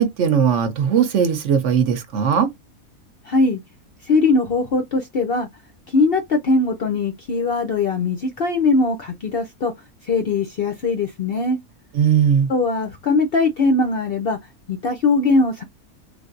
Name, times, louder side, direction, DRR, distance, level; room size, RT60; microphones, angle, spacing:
voice 1, 0.0-2.5 11.9-12.5, right 8 dB, 65° right, 0.9 m, -18 dB
voice 2, 3.2-3.6 4.0-5.5 5.9-9.7 10.0-11.6 12.5-14.4 14.7-15.6, left 3 dB, 60° left, 0.6 m, -20 dB
3.3 x 2.5 x 2.4 m
omnidirectional pair, 1.5 m